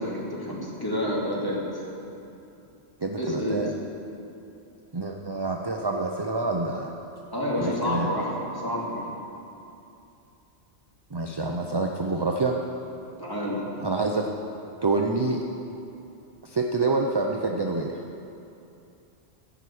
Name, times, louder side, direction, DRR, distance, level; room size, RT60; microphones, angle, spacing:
voice 1, 0.0-1.6 3.2-3.6 7.3-9.1 13.2-13.6, left 1 dB, 15° left, -6 dB, 2.7 m, -29 dB
voice 2, 3.0-3.7 4.9-6.9 7.5-8.1 11.1-12.6 13.8-14.3 14.8-15.4 16.4-18.0, right 3 dB, 30° right, 1 dB, 0.5 m, -27 dB
15.0 x 6.2 x 8.5 m, 2.7 s
omnidirectional pair, 1.2 m